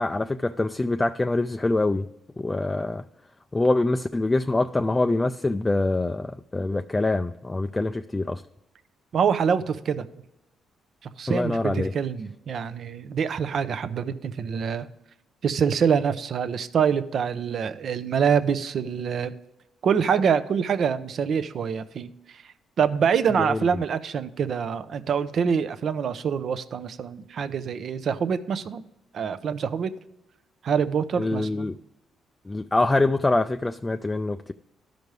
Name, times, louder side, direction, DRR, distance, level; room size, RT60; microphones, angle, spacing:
voice 1, 0.0-2.1 2.4-3.0 3.5-8.4 11.3-11.9 23.4-23.6 31.2-31.8 32.5-34.5, left 2 dB, 20° left, 0.3 m, -25 dB
voice 2, 9.1-10.1 11.2-14.9 15.4-19.3 19.8-22.4 22.8-28.8 29.1-29.9 30.6-31.7, right 7 dB, 60° right, 0.6 m, -25 dB
13.0 x 5.2 x 3.2 m
cardioid pair, 90°, 0 cm